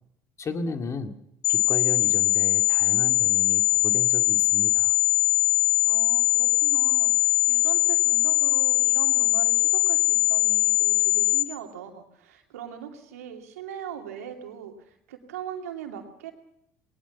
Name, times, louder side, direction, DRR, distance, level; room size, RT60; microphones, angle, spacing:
voice 1, 0.4-1.1 1.5-5.0, left 3 dB, 40° left, 7 dB, 2.3 m, -34 dB
sound 1, 1.4-11.4, left 19 dB, 80° left, 1.3 m, -21 dB
voice 2, 5.8-16.3, right 9 dB, 85° right, 4 dB, 2.6 m, -40 dB
20.0 x 19.0 x 7.1 m, 0.74 s
hypercardioid pair, 65°, 8 cm